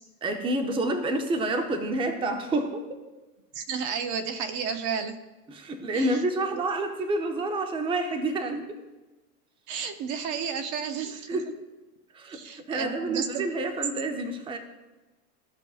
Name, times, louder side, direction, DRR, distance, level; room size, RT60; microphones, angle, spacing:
voice 1, 0.2-2.9 5.5-8.8 11.3-11.5 12.1-14.6, right 2 dB, 10° right, 6 dB, 0.7 m, -28 dB
voice 2, 3.5-5.2 5.9-6.1 9.7-11.4 12.3-13.5, right 6 dB, 40° right, 9 dB, 0.7 m, -32 dB
14.5 x 5.3 x 2.4 m, 1.1 s
hypercardioid pair, 120°, 46 cm